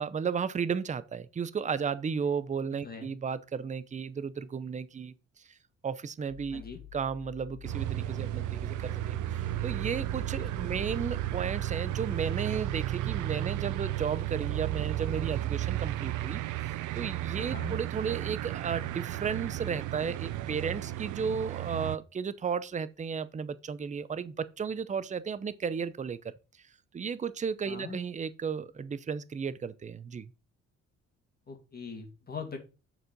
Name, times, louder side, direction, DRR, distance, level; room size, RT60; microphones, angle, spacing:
voice 1, 0.0-5.1 5.8-6.6 6.9-26.3 26.9-30.3, right 6 dB, 25° right, 0.6 m, -34 dB
sound 1, 6.3-12.8, left 12 dB, 70° left, 2.2 m, -49 dB
sound 2, 7.6-22.0, right 15 dB, 80° right, 0.5 m, -33 dB
voice 2, 10.4-10.8 17.4-17.8 27.6-28.0 31.5-32.6, left 5 dB, 30° left, 2.0 m, -42 dB
6.6 x 4.5 x 5.1 m
cardioid pair, 90°, 30 cm